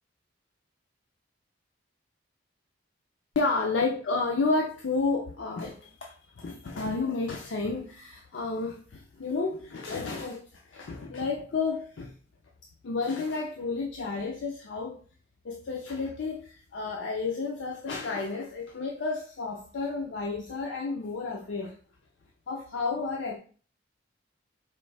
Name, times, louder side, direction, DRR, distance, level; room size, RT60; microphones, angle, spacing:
voice 1, 3.4-12.1 12.8-15.0 15.4-21.8 22.5-23.4, left 3 dB, 70° left, 1 dB, 0.5 m, -31 dB
4.4 x 2.6 x 3.2 m, 0.42 s
head